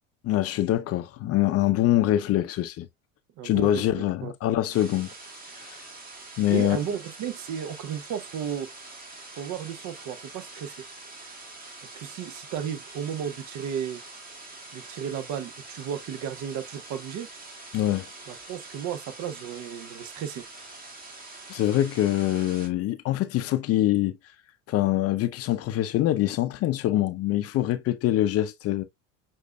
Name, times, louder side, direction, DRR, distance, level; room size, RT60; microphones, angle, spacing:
voice 1, 0.2-2.9 3.4-5.1 5.7-5.8 6.4-6.8 17.7-18.1 21.5-24.1 24.7-28.8, left 13 dB, 40° left, 0.5 m, -24 dB
voice 2, 3.4-3.8 4.2-4.3 6.5-8.7 9.4-10.8 11.8-14.0 14.7-17.3 18.3-20.4, right 8 dB, 50° right, 0.7 m, -34 dB
sound 1, 4.7-22.7, right 2 dB, 20° right, 1.5 m, -45 dB
6.3 x 2.5 x 2.2 m
hypercardioid pair, 80°, 39 cm